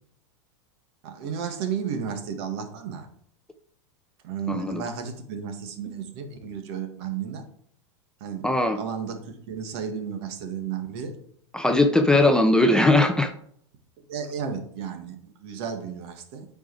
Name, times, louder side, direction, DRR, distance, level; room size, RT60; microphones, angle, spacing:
voice 1, 1.0-3.1 4.2-7.4 8.2-11.2 14.0-16.5, right 7 dB, 60° right, 5 dB, 1.8 m, -33 dB
voice 2, 4.5-4.8 8.4-8.8 11.5-13.3, left 2 dB, 5° left, 7 dB, 0.6 m, -19 dB
8.7 x 4.9 x 4.8 m, 0.65 s
supercardioid pair, 130°, 15 cm